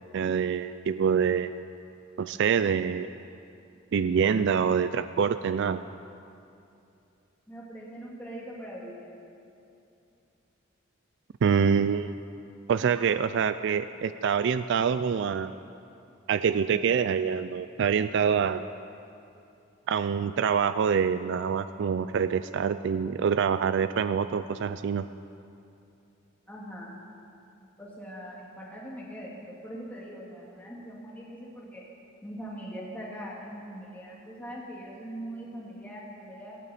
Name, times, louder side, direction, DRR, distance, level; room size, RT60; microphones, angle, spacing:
voice 1, 0.1-1.5 2.2-3.1 3.9-5.8 11.4-12.2 12.7-15.5 16.3-18.6 19.9-25.0, right 6 dB, 60° right, 12 dB, 0.3 m, -25 dB
voice 2, 7.5-9.2 12.9-13.0 26.5-27.0 27.8-31.8 32.2-36.6, equal, 10° left, -5 dB, 2.1 m, -41 dB
18.0 x 15.5 x 4.2 m, 2.7 s
head